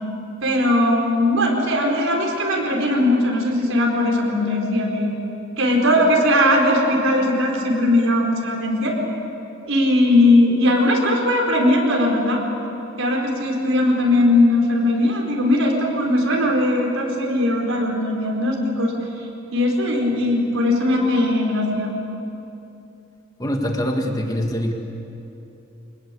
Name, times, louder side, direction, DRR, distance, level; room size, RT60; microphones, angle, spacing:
voice 1, 0.4-5.1 5.6-8.9 9.7-12.4 13.0-18.9 19.5-21.9, left 1 dB, 85° right, 0 dB, 4.6 m, -19 dB
voice 2, 23.4-24.7, equal, 20° left, 2 dB, 1.7 m, -23 dB
25.5 x 20.5 x 8.6 m, 2.9 s
head